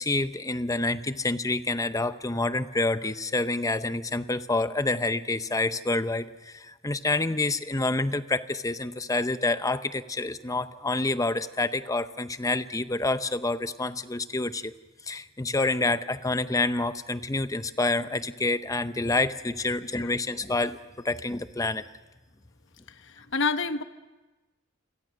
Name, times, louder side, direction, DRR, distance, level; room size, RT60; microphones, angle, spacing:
voice 1, 0.0-14.7 15.1-20.8 21.0-21.8, left 2 dB, 15° left, 12 dB, 0.7 m, -28 dB
voice 2, 22.9-23.8, left 4 dB, 60° left, 10 dB, 1.1 m, -29 dB
29.0 x 23.0 x 6.4 m, 1.2 s
head